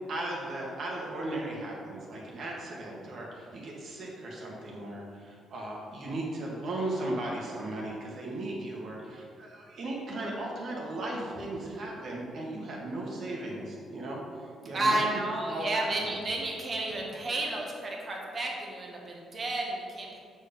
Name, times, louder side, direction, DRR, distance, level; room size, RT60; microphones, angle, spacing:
voice 1, 0.1-15.0 15.5-16.2, right 1 dB, 60° right, -3 dB, 2.0 m, -36 dB
voice 2, 14.7-20.2, right 2 dB, 40° right, -1 dB, 1.6 m, -31 dB
7.0 x 4.8 x 5.4 m, 2.3 s
cardioid pair, 90°, 0 cm